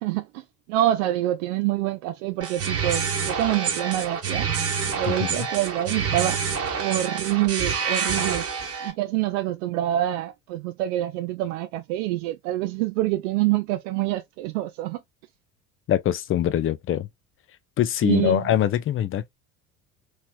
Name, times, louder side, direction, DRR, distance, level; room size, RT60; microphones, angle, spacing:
voice 1, 0.0-4.5 4.9-6.4 6.8-8.5 8.8-15.0 18.0-18.5, right 14 dB, 60° right, 0.5 m, -26 dB
sound 1, 2.4-8.9, right 6 dB, 35° right, 1.2 m, -27 dB
voice 2, 5.1-5.5 15.9-17.1 17.8-19.3, left 11 dB, 30° left, 0.6 m, -23 dB
3.1 x 3.1 x 2.2 m
figure-of-eight pair, 65°, 42 cm